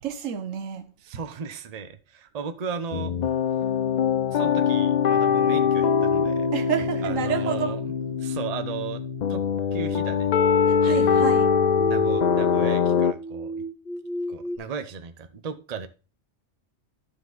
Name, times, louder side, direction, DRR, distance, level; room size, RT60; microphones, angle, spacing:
voice 1, 0.0-0.9 6.5-7.7 10.7-11.5, right 8 dB, 85° right, 1.3 m, -29 dB
voice 2, 1.0-3.1 4.3-6.5 7.0-7.9 8.2-9.0 9.3-9.4 9.7-10.3 10.8-11.3 11.9-13.6 14.3-15.9, right 6 dB, 40° right, 0.7 m, -35 dB
sound 1, 2.9-13.1, left 7 dB, 70° left, 0.4 m, -23 dB
sound 2, 7.8-14.6, right 2 dB, 45° left, 1.9 m, -35 dB
11.5 x 5.1 x 4.0 m
omnidirectional pair, 1.3 m